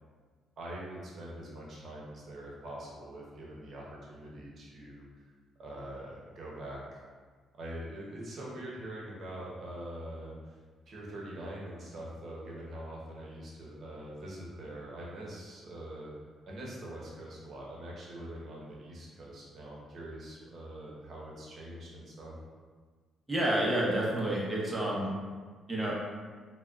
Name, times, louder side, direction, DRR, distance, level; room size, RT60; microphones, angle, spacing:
voice 1, 0.6-5.0 5.6-7.0 7.5-10.3 10.9-16.1 16.5-22.3, right 1 dB, 55° right, -4 dB, 0.9 m, -43 dB
voice 2, 23.3-25.1 25.7-25.9, right 1 dB, 10° right, -5 dB, 0.8 m, -29 dB
3.4 x 2.3 x 2.3 m, 1.5 s
cardioid pair, 90°, 0 cm